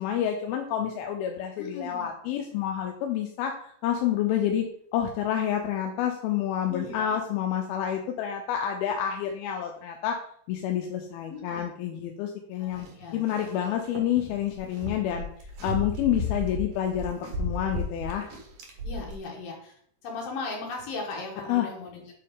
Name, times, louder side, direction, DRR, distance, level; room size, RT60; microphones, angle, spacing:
voice 1, 0.0-10.2 10.5-12.9 13.1-15.3 15.6-18.3 21.5-21.7, left 10 dB, 85° left, 3 dB, 2.4 m, -28 dB
voice 2, 1.6-2.1 6.7-7.1 11.3-11.7 12.5-13.7 18.8-19.7 20.0-22.1, left 3 dB, 65° left, -1 dB, 3.1 m, -38 dB
sound 1, 12.7-13.5 13.8-19.2, left 1 dB, 80° right, 1.2 m, -34 dB
7.7 x 4.2 x 3.6 m, 0.65 s
omnidirectional pair, 4.4 m